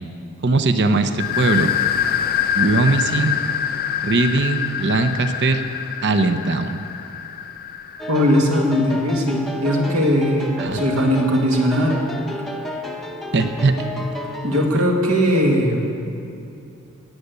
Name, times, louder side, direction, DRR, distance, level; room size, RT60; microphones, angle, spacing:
voice 1, 0.4-1.7 2.5-3.4 4.0-5.6 6.0-6.8 10.6-10.8 13.3-13.7, right 3 dB, 50° right, 8 dB, 0.8 m, -19 dB
sound 1, 1.2-8.7, left 9 dB, 45° left, 0.6 m, -25 dB
sound 2, 8.0-14.7, left 1 dB, ahead, 0.8 m, -31 dB
voice 2, 8.1-12.1 14.4-15.9, equal, 75° right, 0 dB, 2.2 m, -19 dB
17.5 x 6.7 x 8.2 m, 2.6 s
head